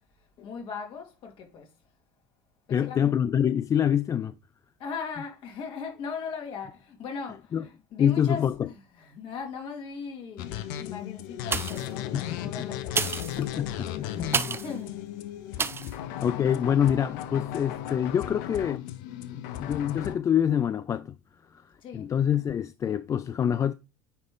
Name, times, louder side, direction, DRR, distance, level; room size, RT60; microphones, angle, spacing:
voice 1, 0.1-1.7 2.7-3.0 4.8-13.4 14.0-15.1 15.6-16.4 21.8-22.1, left 5 dB, 50° left, 2.5 m, -39 dB
voice 2, 2.7-4.3 7.5-7.6 8.0-8.5 12.1-12.5 13.4-14.6 16.2-18.9 19.3-21.2 21.5-23.7, left 9 dB, 30° left, 0.3 m, -26 dB
sound 1, 10.4-20.2, left 11 dB, 65° left, 0.7 m, -36 dB
sound 2, 11.4-12.0 12.8-14.8 15.6-16.0 16.5-16.6, right 5 dB, 20° right, 0.6 m, -30 dB
9.5 x 3.5 x 3.8 m
hypercardioid pair, 70°, 11 cm